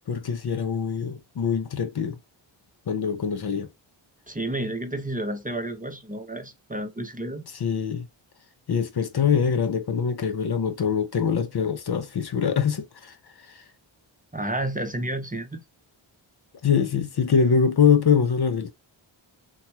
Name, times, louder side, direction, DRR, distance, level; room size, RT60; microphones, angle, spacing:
voice 1, 0.1-2.2 2.9-3.7 7.5-8.1 8.7-13.6 16.6-18.7, left 7 dB, 50° left, 0.6 m, -24 dB
voice 2, 4.3-7.5 14.3-15.6, right 1 dB, 15° right, 0.7 m, -31 dB
2.9 x 2.3 x 2.7 m
cardioid pair, 45°, 49 cm